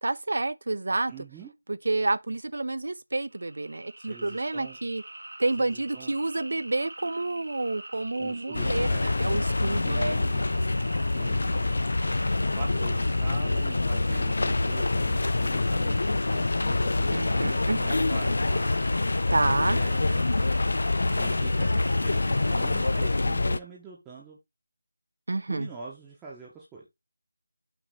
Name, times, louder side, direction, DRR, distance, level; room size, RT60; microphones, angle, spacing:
voice 1, 0.0-1.1 1.7-5.0 5.4-10.2 17.1-17.8 19.3-19.8 25.3-25.7, right 2 dB, 60° right, 0.5 m, -29 dB
voice 2, 1.1-1.5 4.0-4.8 5.6-6.2 8.1-9.0 9.8-10.5 11.1-11.8 12.4-18.9 19.7-20.2 21.1-21.7 22.0-24.4 25.5-26.9, right 4 dB, 5° right, 0.7 m, -44 dB
sound 1, 3.3-23.1, right 1 dB, 90° right, 1.7 m, -45 dB
sound 2, 8.5-23.6, left 2 dB, 55° left, 0.5 m, -26 dB
6.1 x 2.9 x 5.5 m
figure-of-eight pair, 175°, 0 cm